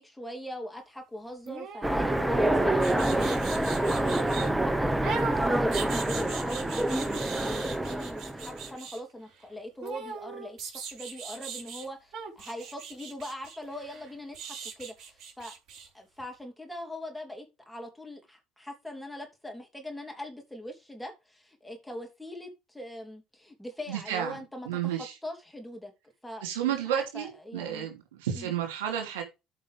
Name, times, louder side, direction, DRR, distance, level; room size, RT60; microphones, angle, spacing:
voice 1, 0.0-5.7 6.1-15.6 15.9-24.7 25.0-25.9 26.2-27.9 28.3-28.5, equal, 5° left, 3.0 m, -42 dB
sound 1, 1.4-4.5 5.0-9.0 9.8-11.9 12.1-15.9 16.2-16.3, right 5 dB, 55° right, 4.9 m, -39 dB
Train, 1.8-8.7, right 1 dB, 10° right, 1.1 m, -27 dB
voice 2, 23.9-24.4 24.7-25.1 26.4-29.2, right 10 dB, 75° right, 2.7 m, -31 dB
14.0 x 5.4 x 3.4 m
hypercardioid pair, 60°, 0 cm